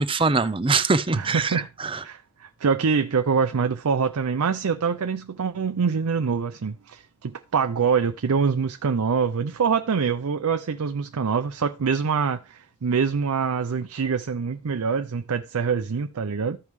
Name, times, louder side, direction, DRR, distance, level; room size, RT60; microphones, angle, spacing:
voice 1, 0.0-2.0, right 4 dB, 25° right, 0.6 m, -23 dB
voice 2, 1.1-1.7 2.0-16.6, right 6 dB, 75° right, 0.5 m, -25 dB
14.5 x 5.3 x 3.1 m
head